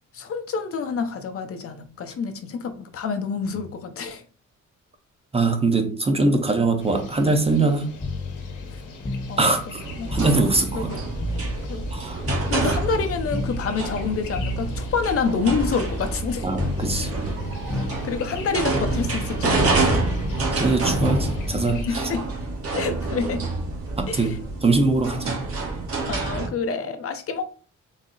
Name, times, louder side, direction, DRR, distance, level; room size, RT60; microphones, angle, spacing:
voice 1, 0.1-4.2 8.7-8.8 9.3-9.4 10.0-10.3 10.7-11.0 11.7-11.9 12.5-16.5 17.6-20.0 21.9-22.3 22.8-23.5 24.1-24.4 26.1-27.4, left 5 dB, 50° left, 0.6 m, -28 dB
voice 2, 5.3-7.9 9.4-9.8 10.1-10.9 11.9-12.2 16.4-17.1 20.4-22.1 24.0-24.3 24.6-25.4, right 3 dB, 20° right, 0.6 m, -22 dB
sound 1, 6.8-21.9, left 3 dB, 85° left, 0.9 m, -41 dB
sound 2, 8.0-12.0 12.2-16.3 16.6-17.4 17.7-18.6 18.8-22.8 24.0-24.3, left 1 dB, 25° left, 0.9 m, -32 dB
sound 3, 9.8-26.5, right 3 dB, 50° right, 1.2 m, -28 dB
4.0 x 2.0 x 3.7 m
cardioid pair, 90°, 30 cm